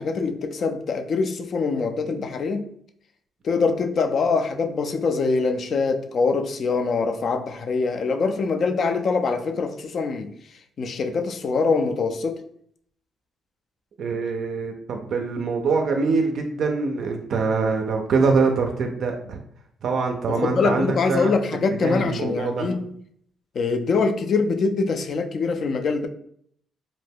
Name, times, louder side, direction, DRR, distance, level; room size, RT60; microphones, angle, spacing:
voice 1, 0.0-2.6 3.4-10.3 10.8-12.4 20.3-22.9 23.6-26.1, left 4 dB, 55° left, 0.3 m, -24 dB
voice 2, 14.0-19.4 19.8-21.3 21.8-22.7, right 4 dB, 65° right, 0.3 m, -24 dB
2.5 x 2.1 x 3.3 m
cardioid pair, 90°, 0 cm